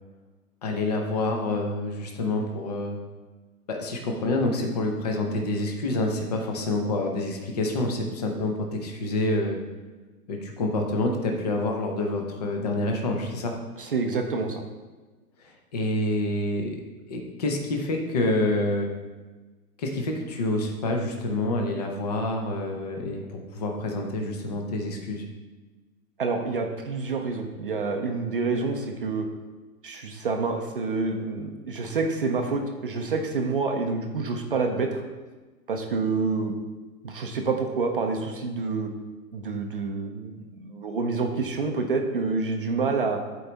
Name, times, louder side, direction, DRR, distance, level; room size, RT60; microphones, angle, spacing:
voice 1, 0.6-3.0 3.7-9.6 10.3-13.5 15.4-16.8 17.1-18.9 19.8-25.2, left 2 dB, 25° left, 2 dB, 0.7 m, -27 dB
voice 2, 13.8-14.5 26.2-29.3 29.8-34.9 35.7-36.5 37.0-38.9 39.3-43.2, right 4 dB, 35° right, 3 dB, 0.5 m, -27 dB
11.5 x 4.7 x 3.9 m, 1.3 s
hypercardioid pair, 170°, 47 cm